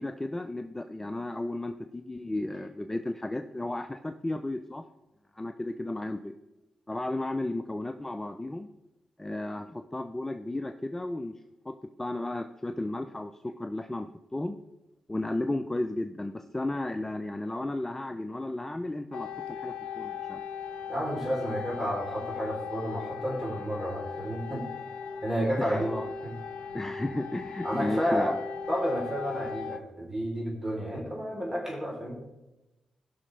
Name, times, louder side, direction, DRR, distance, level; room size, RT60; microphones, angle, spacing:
voice 1, 0.0-4.8 5.3-6.4 6.9-8.7 9.2-11.3 11.7-14.6 15.1-20.4 25.6-26.1 26.7-28.4, left 1 dB, 15° left, 8 dB, 0.6 m, -34 dB
sound 1, 19.1-29.8, left 6 dB, 85° left, 0.8 m, -38 dB
voice 2, 20.9-24.6 25.2-25.9 26.2-26.3 27.6-28.3 28.7-32.2, equal, 20° right, -3 dB, 3.6 m, -31 dB
16.5 x 6.2 x 3.3 m, 1.0 s
cardioid pair, 55°, 2 cm